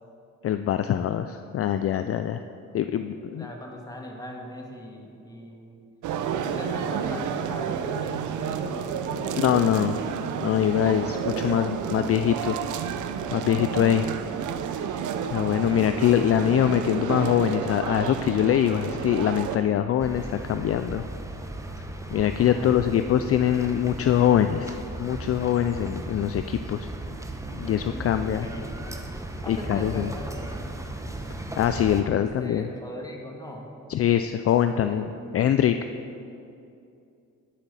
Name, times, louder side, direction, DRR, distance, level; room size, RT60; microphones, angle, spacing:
voice 1, 0.4-2.4 2.7-3.5 9.4-10.0 10.4-12.6 13.3-14.1 15.3-21.0 22.1-26.9 27.5-28.5 29.5-30.1 31.6-32.7 33.9-35.1 35.3-35.8, left 10 dB, 50° left, 9 dB, 0.4 m, -23 dB
voice 2, 3.3-5.8 6.4-9.4 11.3-11.5 22.4-22.9 27.8-29.0 29.4-30.7 31.9-33.7 34.7-36.0, left 1 dB, 10° left, 0 dB, 2.0 m, -40 dB
sound 1, 6.0-19.6, right 7 dB, 75° right, 0.8 m, -30 dB
sound 2, 20.0-32.0, right 2 dB, 10° right, 1.0 m, -36 dB
11.0 x 8.6 x 5.5 m, 2.6 s
cardioid pair, 90°, 30 cm